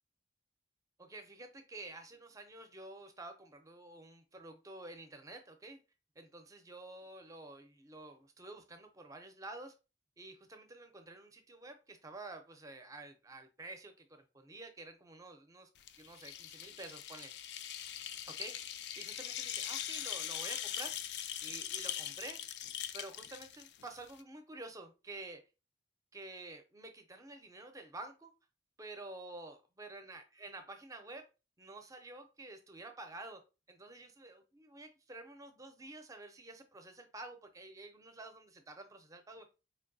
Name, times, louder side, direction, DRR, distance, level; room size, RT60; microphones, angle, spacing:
voice 1, 1.0-5.8 6.2-9.7 10.2-15.7 16.0-17.3 18.3-18.6 19.0-21.0 21.4-22.4 22.9-25.4 26.1-28.3 28.8-31.3 31.6-39.5, right 2 dB, 20° right, 0.5 m, -50 dB
sound 1, 15.8-24.2, left 10 dB, 65° left, 0.3 m, -41 dB
4.3 x 2.6 x 2.6 m
head